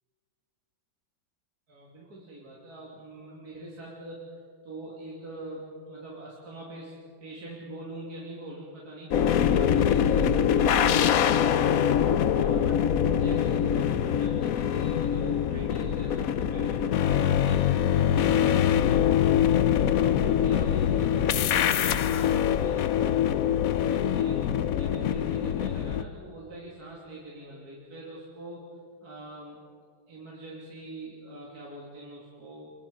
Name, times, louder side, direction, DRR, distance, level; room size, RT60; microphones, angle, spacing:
voice 1, 1.7-4.2 4.6-6.9 7.2-9.1 9.4-11.9 12.3-18.6 19.4-21.6 22.0-23.0 23.9-28.6 29.0-29.6 30.1-32.7, right 1 dB, 50° right, -5 dB, 3.4 m, -43 dB
sound 1, 9.1-26.0, left 9 dB, 65° left, 0.9 m, -24 dB
27.0 x 22.0 x 5.5 m, 2.3 s
omnidirectional pair, 2.1 m